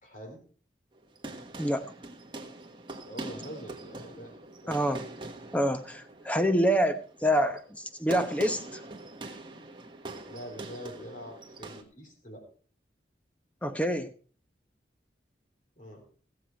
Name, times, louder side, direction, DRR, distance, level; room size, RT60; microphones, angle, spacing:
voice 1, 0.0-0.4 3.1-4.4 4.6-4.9 10.3-12.4 15.8-16.0, equal, 45° left, 2 dB, 3.8 m, -44 dB
sound 1, 0.9-11.8, right 2 dB, 25° right, 1.4 m, -43 dB
voice 2, 4.7-5.0 5.5-8.8 13.6-14.1, equal, 10° left, 9 dB, 0.9 m, -27 dB
17.0 x 7.7 x 4.5 m, 0.42 s
head